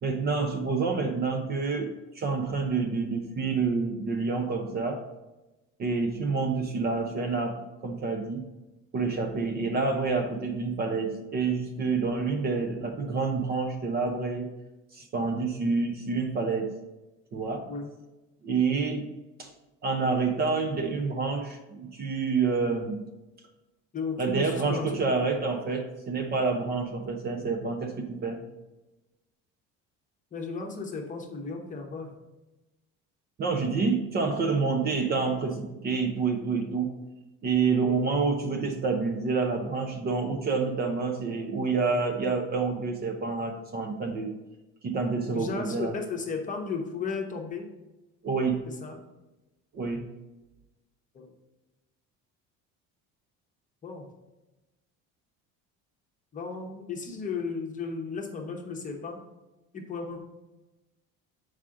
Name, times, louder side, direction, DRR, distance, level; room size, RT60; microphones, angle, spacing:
voice 1, 0.0-5.1 5.8-8.5 8.9-14.5 14.9-16.8 17.3-17.7 18.4-19.1 19.4-19.5 19.8-23.0 24.2-28.4 33.4-36.9 37.4-44.3 44.8-45.9 48.2-48.6 49.7-50.1, right 4 dB, 30° right, 4 dB, 0.6 m, -28 dB
voice 2, 23.9-25.0 30.3-32.1 37.8-38.0 45.3-47.7 48.8-49.0 51.1-51.3 53.8-54.1 56.3-59.2 59.7-60.2, left 5 dB, 25° left, 2 dB, 0.9 m, -35 dB
7.2 x 4.9 x 3.7 m, 1.0 s
cardioid pair, 165°, 31 cm